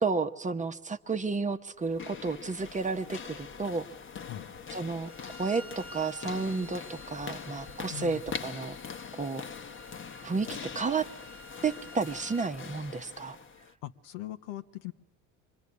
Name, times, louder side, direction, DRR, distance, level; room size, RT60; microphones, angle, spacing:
voice 1, 0.0-3.9 4.7-5.1 5.4-8.8 9.1-9.5 10.2-11.1 11.6-13.4, right 4 dB, 20° right, 8 dB, 1.0 m, -32 dB
sound 1, 1.8-13.7, left 6 dB, 35° left, 1.2 m, -43 dB
Bowed string instrument, 5.0-12.5, equal, 5° left, 1.4 m, -51 dB
voice 2, 7.9-8.2 13.8-14.9, left 15 dB, 70° left, 10 dB, 1.1 m, -40 dB
26.0 x 22.0 x 9.7 m, 1.0 s
hypercardioid pair, 65°, 37 cm